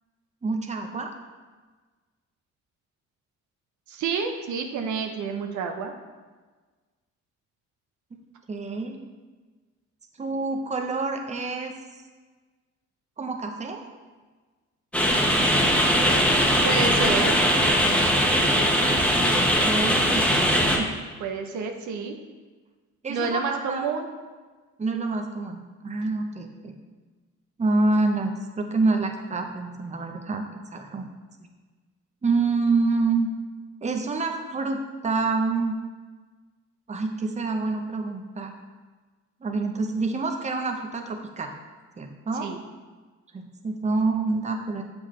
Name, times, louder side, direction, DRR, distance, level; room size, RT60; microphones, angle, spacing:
voice 1, 0.4-1.1 8.5-9.0 10.2-11.7 13.2-13.8 19.6-20.3 20.8-20.9 23.0-23.9 24.8-26.8 27.6-31.1 32.2-33.3 33.8-35.8 36.9-38.5 39.4-41.5 42.0-42.5 43.3-44.8, right 3 dB, 25° right, 4 dB, 0.8 m, -27 dB
voice 2, 3.9-5.9 16.6-17.4 21.2-22.2 23.1-24.1 42.4-42.6, right 5 dB, 75° right, 4 dB, 0.8 m, -29 dB
sound 1, 14.9-20.8, equal, 5° left, 1.1 m, -20 dB
7.3 x 6.1 x 3.2 m, 1.4 s
cardioid pair, 90°, 30 cm